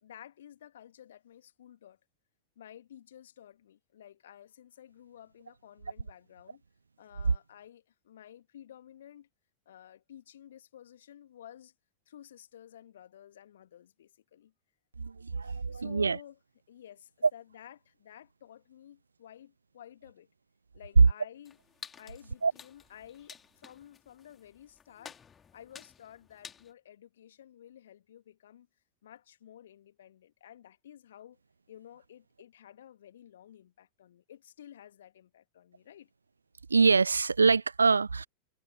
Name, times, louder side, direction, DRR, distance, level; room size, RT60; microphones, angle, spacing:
voice 1, 0.0-2.0 2.6-6.6 7.0-9.3 9.7-11.7 12.1-14.5 15.2-16.4 16.7-20.3 20.7-21.6 22.0-25.2 25.5-28.7 29.0-31.4 31.7-36.1, left 10 dB, 60° left, 2.2 m, -53 dB
voice 2, 15.0-16.2 22.4-22.5 36.7-38.3, right 4 dB, 75° right, 0.6 m, -25 dB
sound 1, 21.5-26.7, left 7 dB, 20° left, 3.2 m, -52 dB
figure-of-eight pair, 90°, 0 cm